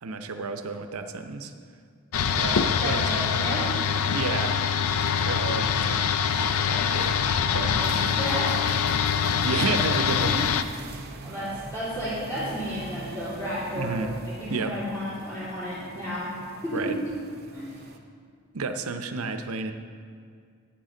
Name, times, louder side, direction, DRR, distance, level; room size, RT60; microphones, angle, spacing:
voice 1, 0.0-1.5 2.3-3.7 4.1-4.6 5.1-7.2 7.5-7.7 9.4-10.4 13.7-14.1 14.5-14.7 16.7-17.0 18.5-19.7, right 4 dB, 85° right, 8 dB, 0.7 m, -31 dB
sound 1, 2.1-10.6, left 7 dB, 80° left, 0.5 m, -24 dB
voice 2, 2.8-3.7 7.4-8.6 10.3-10.4 11.2-16.3 16.6-16.8 17.5-17.8, equal, 15° left, -12 dB, 3.0 m, -32 dB
sound 2, 7.8-18.0, right 3 dB, 45° right, 0.7 m, -43 dB
12.0 x 9.0 x 3.8 m, 2.2 s
head